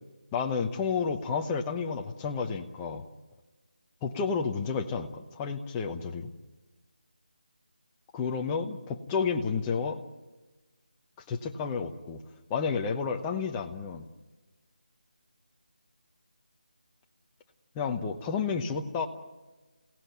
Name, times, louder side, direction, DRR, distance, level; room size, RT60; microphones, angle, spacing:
voice 1, 0.3-3.0 4.0-6.3 8.1-10.0 11.3-12.2 12.5-14.1 17.7-19.1, left 5 dB, 10° left, 3 dB, 1.0 m, -31 dB
28.0 x 17.5 x 9.3 m, 1.2 s
figure-of-eight pair, 170°, 5 cm